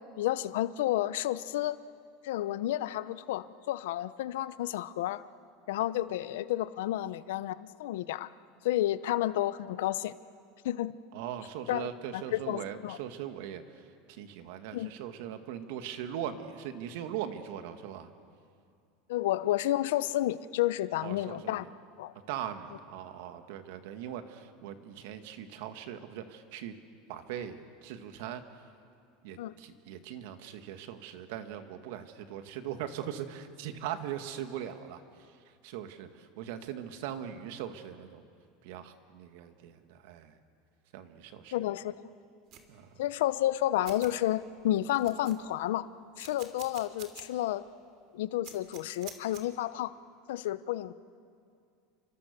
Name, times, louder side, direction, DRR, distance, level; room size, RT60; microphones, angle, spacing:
voice 1, 0.2-1.8 2.2-5.2 5.7-8.3 8.6-10.1 10.6-11.0 11.7-11.9 12.1-13.0 14.7-14.9 19.1-21.6 22.0-22.1 29.4-29.5 41.5-42.0 43.0-45.9 46.2-47.6 48.1-49.9 50.3-50.9, left 14 dB, 85° left, 15 dB, 0.8 m, -31 dB
voice 2, 11.1-18.1 21.0-21.7 22.3-26.7 27.1-28.4 29.2-35.4 35.6-38.2 38.6-40.4 40.9-41.5 42.7-42.9, right 10 dB, 70° right, 8 dB, 2.0 m, -40 dB
sound 1, 42.5-42.7 43.5-43.6 43.8-44.1 44.6-44.7 44.9-45.6 46.2-47.3 47.7-47.8 48.4-49.4, right 9 dB, 50° right, 3.2 m, -48 dB
29.5 x 25.0 x 6.9 m, 2.4 s
supercardioid pair, 140°, 0 cm